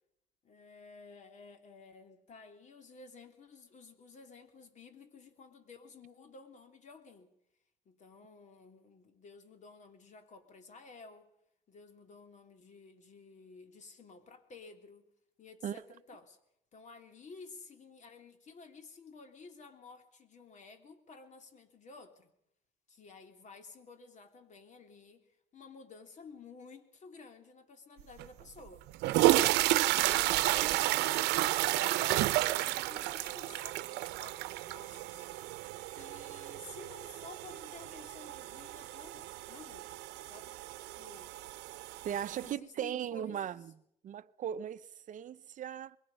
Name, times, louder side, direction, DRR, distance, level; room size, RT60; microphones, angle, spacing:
voice 1, 0.4-7.3 7.8-11.3 11.7-15.1 15.4-16.4 16.7-22.3 22.9-25.2 25.5-28.9 29.9-30.9 31.7-35.3 35.9-40.6 41.0-41.3 42.2-43.5, left 4 dB, 45° left, 3.1 m, -53 dB
sound 1, 28.2-28.3 28.9-42.5, right 17 dB, 90° right, 0.8 m, -32 dB
voice 2, 42.0-43.8 44.0-46.0, right 9 dB, 50° right, 0.7 m, -38 dB
24.5 x 21.5 x 5.5 m
cardioid pair, 110°, 17 cm